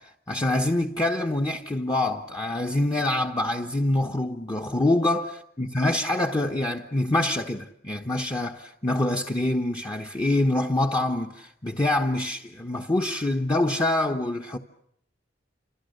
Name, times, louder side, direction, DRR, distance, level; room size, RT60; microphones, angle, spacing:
voice 1, 0.3-14.6, left 1 dB, 20° left, 1.2 m, -25 dB
30.0 x 27.5 x 6.7 m
head